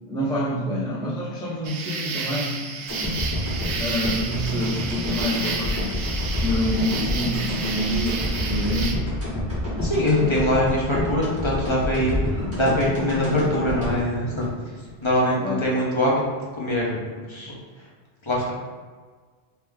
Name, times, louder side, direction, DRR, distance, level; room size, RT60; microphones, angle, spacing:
voice 1, 0.0-2.7 3.8-5.8 6.4-9.1 15.3-15.6, left 1 dB, 10° left, -5 dB, 0.3 m, -27 dB
sound 1, 1.6-9.0, right 5 dB, 70° right, 0.8 m, -31 dB
sound 2, 2.9-15.1 15.5-15.6, left 1 dB, 15° right, 1.5 m, -28 dB
voice 2, 9.8-12.2 12.5-14.5 15.0-16.1 16.5-17.5 18.2-18.5, left 1 dB, 30° left, -5 dB, 0.7 m, -23 dB
3.3 x 3.1 x 3.5 m, 1.5 s
omnidirectional pair, 1.1 m